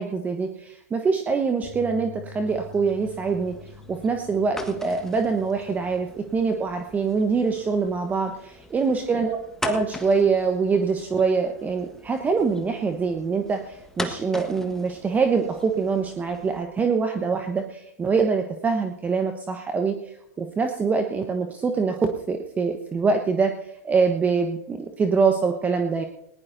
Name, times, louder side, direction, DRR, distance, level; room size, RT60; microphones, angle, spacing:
voice 1, 0.0-3.6 3.9-23.5 23.8-26.0, right 5 dB, 20° right, 5 dB, 1.1 m, -24 dB
Bass guitar, 1.6-7.9, left 4 dB, 50° left, 4.0 m, -47 dB
sound 1, 2.4-16.6, left 2 dB, 5° left, 1.5 m, -40 dB
20.0 x 19.0 x 2.7 m, 0.82 s
figure-of-eight pair, 100°, 9 cm